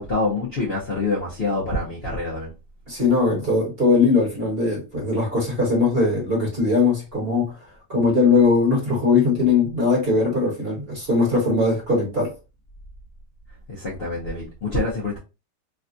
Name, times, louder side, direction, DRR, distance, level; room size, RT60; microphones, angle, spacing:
voice 1, 0.0-2.5 13.7-15.2, left 2 dB, 45° left, 0.9 m, -26 dB
voice 2, 2.9-7.6 7.9-12.3, left 3 dB, 35° right, 1.5 m, -20 dB
3.4 x 2.4 x 2.5 m
omnidirectional pair, 1.9 m